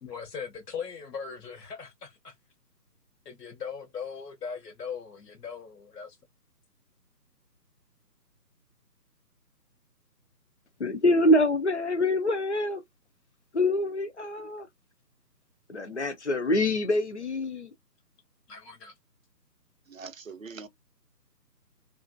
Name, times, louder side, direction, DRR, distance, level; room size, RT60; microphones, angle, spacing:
voice 1, 0.0-2.3 3.2-6.2 18.5-18.9, left 6 dB, 70° left, 1.0 m, -39 dB
voice 2, 10.8-12.8 13.5-14.7 15.7-17.7, left 1 dB, 45° left, 0.4 m, -25 dB
voice 3, 19.9-20.7, right 5 dB, 55° right, 0.5 m, -42 dB
2.8 x 2.5 x 2.5 m
hypercardioid pair, 170°, 50 cm